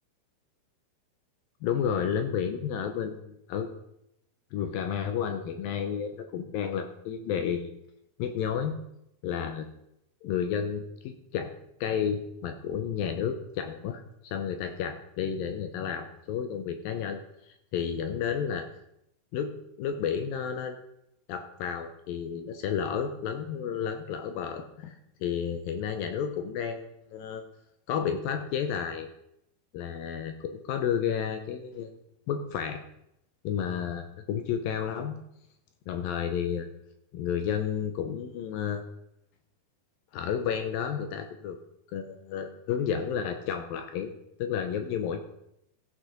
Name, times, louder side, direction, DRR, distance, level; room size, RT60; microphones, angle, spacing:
voice 1, 1.6-3.7 4.5-7.7 8.2-8.8 9.2-9.7 10.2-11.5 11.8-17.2 17.5-18.7 19.3-20.8 21.3-27.4 27.9-29.1 29.7-31.9 32.3-32.8 33.4-35.2 35.9-36.7 37.1-38.8 40.1-41.6 41.9-45.2, left 8 dB, 80° left, 7 dB, 2.1 m, -31 dB
15.0 x 6.3 x 5.0 m, 0.81 s
omnidirectional pair, 4.8 m